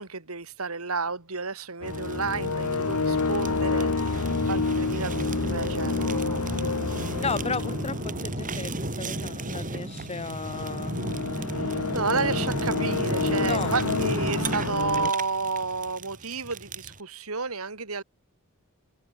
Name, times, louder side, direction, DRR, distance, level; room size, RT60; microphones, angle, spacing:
voice 1, 0.0-6.5 11.5-18.0, right 4 dB, 85° right, 2.9 m, -31 dB
sound 1, 1.8-15.1, left 4 dB, 85° left, 1.0 m, -29 dB
Fire, 1.9-17.0, right 2 dB, 40° right, 4.9 m, -34 dB
voice 2, 7.2-8.7 9.0-11.0 13.4-13.7, left 4 dB, 30° left, 1.3 m, -33 dB
head